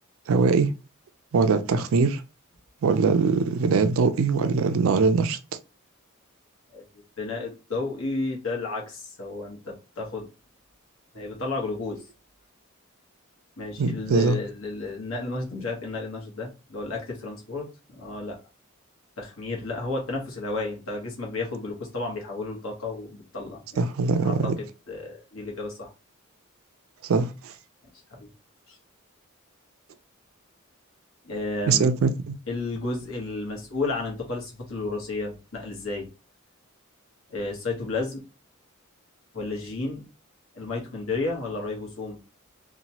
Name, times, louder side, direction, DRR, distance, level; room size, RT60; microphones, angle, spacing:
voice 1, 0.3-0.7 1.3-2.2 2.8-5.4 13.8-14.4 23.8-24.5 27.1-27.3 31.7-32.3, right 4 dB, 70° right, 0.4 m, -22 dB
voice 2, 7.2-10.3 11.1-12.0 13.6-18.4 19.2-25.9 28.1-28.3 28.7-28.8 31.2-31.9 32.5-36.1 37.3-38.2 39.3-40.0 40.5-42.2, left 3 dB, 70° left, 1.1 m, -32 dB
2.9 x 2.2 x 2.8 m
head